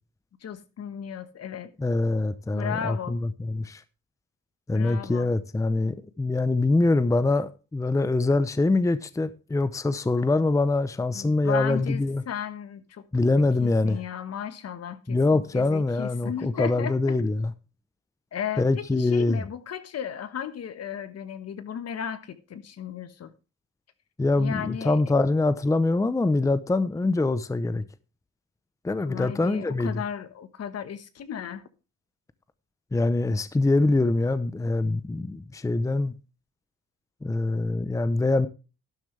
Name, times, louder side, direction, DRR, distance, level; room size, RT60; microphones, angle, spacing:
voice 1, 0.4-1.7 2.5-3.2 4.7-5.3 11.1-13.0 13.6-17.2 18.3-23.3 24.4-25.0 29.1-31.6, left 8 dB, 55° left, 1.3 m, -35 dB
voice 2, 1.8-3.8 4.7-12.2 13.1-14.0 15.1-17.5 18.6-19.4 24.2-27.8 28.8-30.0 32.9-36.1 37.2-38.5, left 2 dB, 10° left, 0.7 m, -24 dB
12.0 x 10.5 x 3.3 m
cardioid pair, 90°, 30 cm